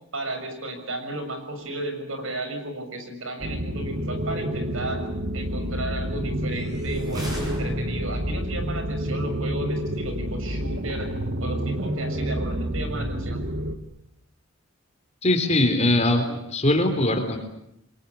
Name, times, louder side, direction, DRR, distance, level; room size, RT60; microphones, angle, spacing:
voice 1, 0.1-5.0 5.3-11.1 11.4-13.5, right 2 dB, 70° right, 6 dB, 6.6 m, -33 dB
sound 1, 3.4-13.8, equal, 55° right, 2.3 m, -29 dB
sound 2, 6.5-8.3, equal, 20° right, 7.8 m, -35 dB
voice 2, 15.2-17.4, left 1 dB, 30° left, 5 dB, 3.8 m, -21 dB
29.0 x 23.0 x 8.4 m, 0.78 s
head